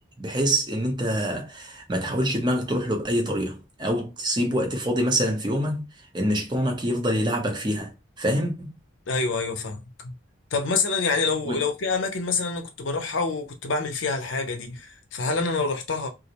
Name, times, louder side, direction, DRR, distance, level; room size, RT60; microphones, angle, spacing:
voice 1, 0.2-5.9 6.1-7.9 8.2-8.7 11.4-11.6, equal, 20° right, 0.6 m, -25 dB
voice 2, 9.1-10.1 10.5-16.1, left 4 dB, 70° left, 0.6 m, -27 dB
2.4 x 2.0 x 2.8 m
head